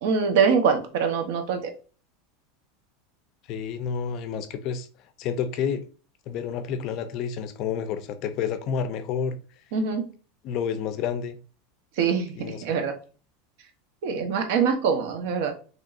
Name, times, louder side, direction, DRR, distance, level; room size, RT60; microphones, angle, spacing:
voice 1, 0.0-1.6 9.7-10.0 12.0-12.4 12.6-12.9 14.0-15.5, right 6 dB, 65° right, 0.9 m, -23 dB
voice 2, 3.5-4.9 5.2-5.8 6.3-9.4 10.4-11.4 12.3-12.7, left 7 dB, 45° left, 0.5 m, -29 dB
5.3 x 3.1 x 2.5 m
supercardioid pair, 155°, 0 cm